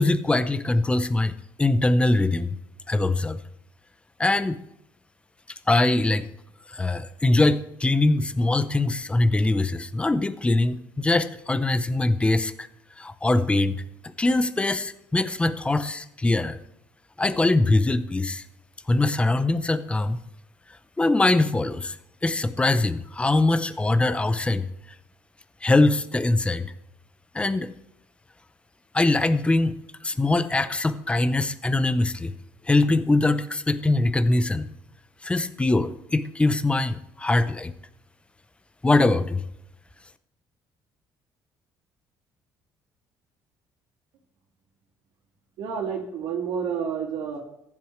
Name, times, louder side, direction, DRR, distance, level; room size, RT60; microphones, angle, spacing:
voice 1, 0.0-2.6 2.9-3.4 4.2-4.6 5.7-6.3 6.7-12.7 13.0-13.8 14.2-16.6 17.2-18.4 18.9-20.2 21.0-22.0 22.2-24.7 25.6-26.7 27.3-27.7 28.9-29.8 30.0-32.3 32.6-34.7 35.2-37.7 38.8-39.4, left 2 dB, 15° left, 13 dB, 0.7 m, -22 dB
voice 2, 45.6-47.4, right 7 dB, 85° right, -5 dB, 2.5 m, -29 dB
14.5 x 11.0 x 3.2 m, 0.79 s
cardioid pair, 100°, 8 cm